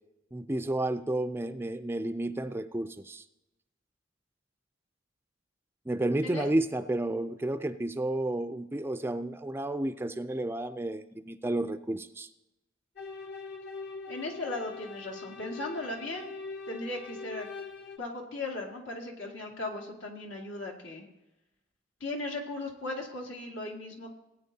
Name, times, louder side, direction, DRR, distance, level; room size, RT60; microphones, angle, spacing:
voice 1, 0.3-3.2 5.9-12.3, right 1 dB, 10° right, 10 dB, 0.4 m, -31 dB
sound 1, 13.0-18.0, left 4 dB, 60° left, 1.2 m, -42 dB
voice 2, 14.1-16.3 16.7-17.5 18.0-21.0 22.0-24.1, left 2 dB, 80° left, 0 dB, 2.1 m, -37 dB
18.0 x 9.2 x 2.8 m, 0.95 s
head